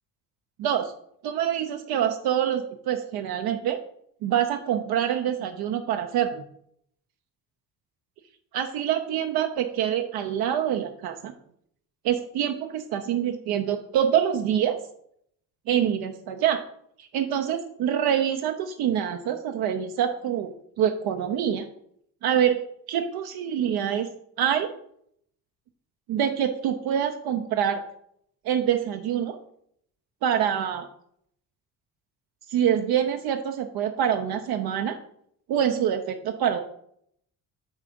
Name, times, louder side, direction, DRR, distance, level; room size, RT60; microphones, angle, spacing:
voice 1, 0.6-0.9 1.2-3.8 4.2-6.4 8.5-11.3 12.0-14.8 15.7-16.6 17.0-21.7 22.2-22.6 22.9-24.1 24.4-24.7 26.1-27.8 28.4-29.4 30.2-30.9 32.5-35.0 35.5-36.6, right 9 dB, 75° right, 5 dB, 0.7 m, -25 dB
8.2 x 3.7 x 5.2 m, 0.69 s
cardioid pair, 105°, 38 cm